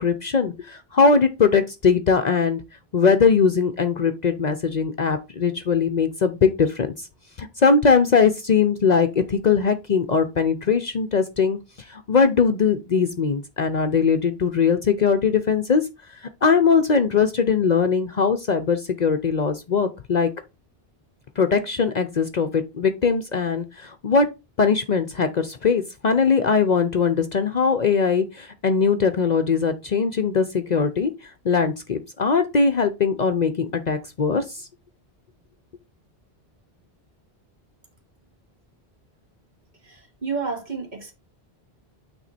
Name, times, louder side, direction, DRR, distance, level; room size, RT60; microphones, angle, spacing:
voice 1, 0.0-2.6 2.9-7.1 7.4-11.6 11.9-15.8 16.4-20.3 21.4-24.3 24.6-34.7, left 5 dB, 50° left, 0.7 m, -20 dB
voice 2, 39.8-41.1, right 4 dB, 45° right, 1.8 m, -30 dB
9.0 x 3.5 x 4.2 m
omnidirectional pair, 1.0 m